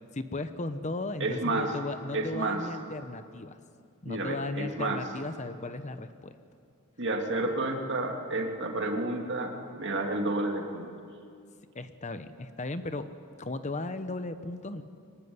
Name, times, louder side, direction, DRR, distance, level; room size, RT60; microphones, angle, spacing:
voice 1, 0.1-3.6 4.0-6.3 11.7-13.1 13.4-14.8, left 2 dB, 35° left, 10 dB, 0.9 m, -36 dB
voice 2, 1.2-1.7 2.1-2.6 4.0-5.0 7.0-10.9, right 2 dB, 55° right, 3 dB, 2.8 m, -30 dB
24.0 x 19.5 x 9.6 m, 2.4 s
head